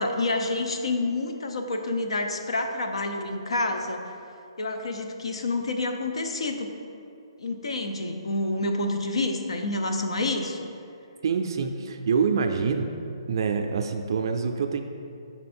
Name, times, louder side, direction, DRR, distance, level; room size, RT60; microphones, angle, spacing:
voice 1, 0.0-4.0 4.6-6.7 7.4-10.6, left 2 dB, 85° left, 5 dB, 0.7 m, -28 dB
voice 2, 11.2-12.9 13.3-14.8, right 5 dB, 50° right, 5 dB, 0.4 m, -26 dB
5.7 x 4.6 x 4.3 m, 2.5 s
hypercardioid pair, 165°, 3 cm